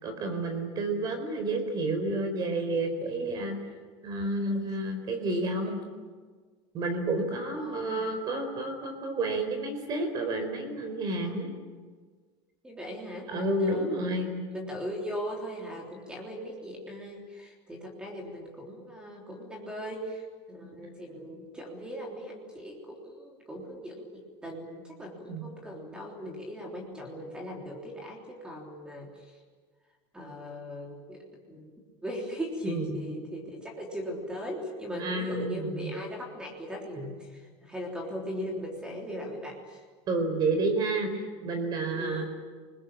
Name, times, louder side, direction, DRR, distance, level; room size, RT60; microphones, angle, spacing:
voice 1, 0.0-3.6 4.0-5.8 6.7-11.5 13.3-14.4 25.3-25.4 32.6-33.0 34.9-35.9 37.0-37.1 40.1-42.3, right 2 dB, 30° right, 7 dB, 4.5 m, -30 dB
voice 2, 7.6-8.0 12.6-14.2 14.5-29.1 30.1-31.2 31.5-31.7 32.0-39.8 41.9-42.3, equal, 5° right, 0 dB, 3.4 m, -38 dB
28.0 x 21.0 x 8.8 m, 1.5 s
cardioid pair, 175°, 14 cm